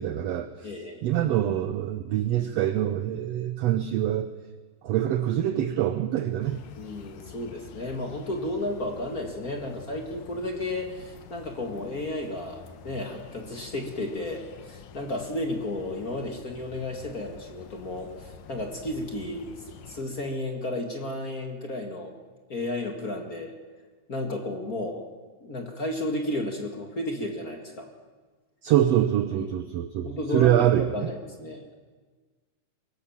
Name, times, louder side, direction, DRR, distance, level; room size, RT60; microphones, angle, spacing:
voice 1, 0.0-0.7 1.0-4.3 4.8-6.6 28.6-31.1, right 11 dB, 75° right, 10 dB, 1.6 m, -25 dB
voice 2, 0.6-1.0 6.8-19.6 19.9-22.1 22.5-23.5 24.1-25.0 25.4-27.9 29.4-29.6 30.0-31.6, left 1 dB, 35° left, 2 dB, 1.9 m, -33 dB
sound 1, 6.4-20.0, left 7 dB, 70° left, 2.3 m, -47 dB
23.0 x 17.5 x 7.3 m, 1.4 s
omnidirectional pair, 3.7 m